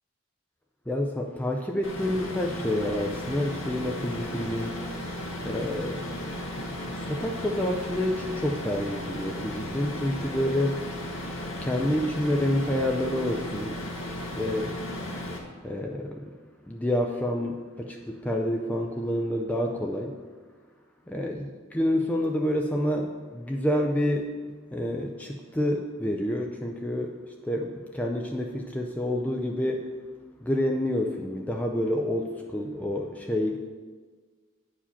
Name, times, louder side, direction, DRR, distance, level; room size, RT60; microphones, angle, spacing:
voice 1, 0.9-4.8 5.4-6.3 6.6-10.9 11.6-13.7 14.1-14.8 15.6-16.3 16.7-20.1 21.1-21.4 21.7-27.2 27.4-29.9 30.4-33.6, left 1 dB, 10° left, 1 dB, 0.4 m, -28 dB
sound 1, 1.8-15.4, left 1 dB, 75° left, 1.5 m, -35 dB
8.6 x 4.9 x 5.6 m, 1.5 s
head